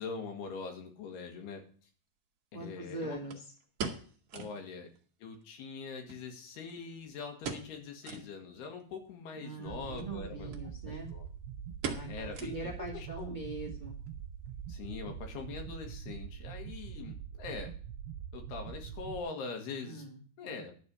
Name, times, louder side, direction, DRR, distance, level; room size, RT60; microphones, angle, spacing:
voice 1, 0.0-1.6 2.5-3.2 4.3-4.9 5.2-10.6 10.9-11.3 12.1-13.4 14.7-17.7 18.3-20.1 20.4-20.7, left 5 dB, 80° left, 4 dB, 3.7 m, -43 dB
sound 1, 1.2-1.3 3.3-4.6 4.9-5.0 5.3-5.4 6.1-6.9 7.4-7.8 8.0-8.3 8.8-8.9 9.9-10.1 10.5-10.6 10.9-11.3 11.8-12.9 13.2-13.3 13.9-14.2 14.5-14.6, right 5 dB, 55° right, 1.8 m, -41 dB
voice 2, 2.5-3.4 4.3-4.5 9.3-11.1 11.8-14.0 19.8-20.7, right 2 dB, 20° right, -1 dB, 1.4 m, -42 dB
sound 2, 9.7-19.2, right 8 dB, 80° right, 2.6 m, -44 dB
11.5 x 4.4 x 8.2 m, 0.43 s
omnidirectional pair, 4.5 m